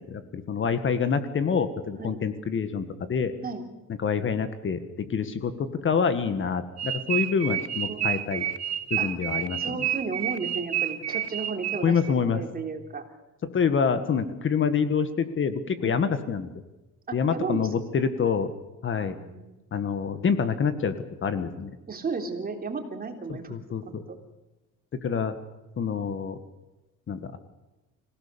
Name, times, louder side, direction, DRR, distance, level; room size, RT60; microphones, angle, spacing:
voice 1, 0.0-3.3 4.0-8.5 8.9-9.8 11.8-12.4 13.4-16.5 17.1-18.5 18.8-19.2 19.7-21.0 21.2-21.8 23.5-24.0 25.0-25.3 25.8-26.4 27.1-27.4, left 6 dB, 40° left, 11 dB, 1.7 m, -26 dB
sound 1, 6.8-12.1, right 11 dB, 50° right, 1.4 m, -29 dB
voice 2, 7.9-8.2 9.0-9.1 9.6-13.0 15.8-16.0 17.1-17.7 18.9-19.5 21.9-23.5 23.8-24.2, right 4 dB, 30° right, 5 dB, 3.5 m, -34 dB
26.5 x 17.5 x 6.9 m, 1.0 s
cardioid pair, 135°, 32 cm